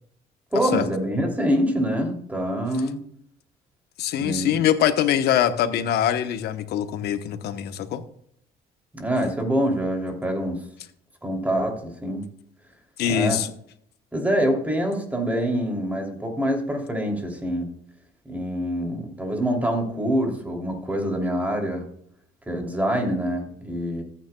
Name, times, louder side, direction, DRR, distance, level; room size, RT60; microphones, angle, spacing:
voice 1, 0.5-3.0 4.1-4.6 8.9-10.6 11.2-12.3 13.1-13.4 14.1-17.7 18.2-21.9 22.5-24.0, equal, 10° right, 1 dB, 2.9 m, -25 dB
voice 2, 4.0-8.0 13.0-13.5, left 10 dB, 75° left, 10 dB, 1.0 m, -23 dB
14.5 x 9.4 x 2.3 m, 0.66 s
cardioid pair, 110°, 17 cm